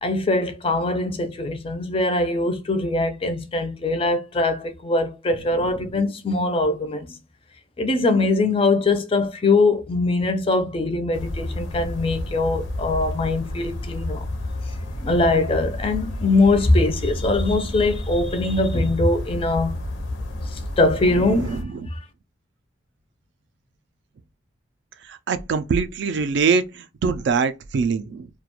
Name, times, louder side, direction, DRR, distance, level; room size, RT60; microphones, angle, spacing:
voice 1, 0.0-7.1 7.8-14.3 15.0-19.7 20.5-22.0, left 2 dB, 30° left, 0.4 m, -22 dB
sound 1, 11.1-21.6, left 1 dB, 85° left, 0.5 m, -30 dB
voice 2, 21.2-21.9 25.1-28.3, right 5 dB, 65° right, 0.3 m, -24 dB
2.3 x 2.2 x 2.9 m
head